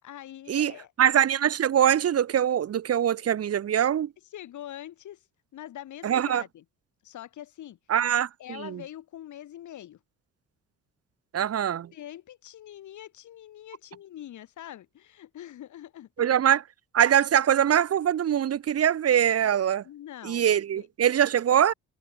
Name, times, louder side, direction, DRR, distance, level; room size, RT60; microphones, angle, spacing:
voice 1, 0.0-0.9 3.3-3.4 4.3-5.2 5.5-6.6 7.0-7.8 8.4-10.0 11.9-16.3 19.4-19.5 19.8-20.4 20.8-20.9, left 12 dB, 75° left, 6.0 m, -44 dB
voice 2, 1.0-4.1 6.0-6.4 7.9-8.8 11.3-11.9 16.2-16.6 16.9-19.8 20.2-21.7, right 9 dB, 55° right, 1.2 m, -23 dB
cardioid pair, 90°, 30 cm